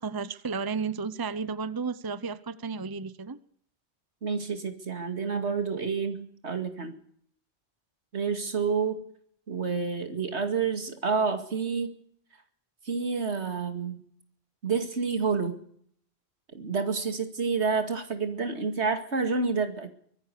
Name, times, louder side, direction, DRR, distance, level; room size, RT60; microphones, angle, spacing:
voice 1, 0.0-3.4, right 5 dB, 25° right, 15 dB, 0.8 m, -33 dB
voice 2, 4.2-6.9 8.1-9.1 9.5-12.0 12.8-14.0 14.6-15.6 16.5-19.9, right 5 dB, 85° right, 7 dB, 2.5 m, -29 dB
24.0 x 16.0 x 6.8 m, 0.63 s
omnidirectional pair, 1.1 m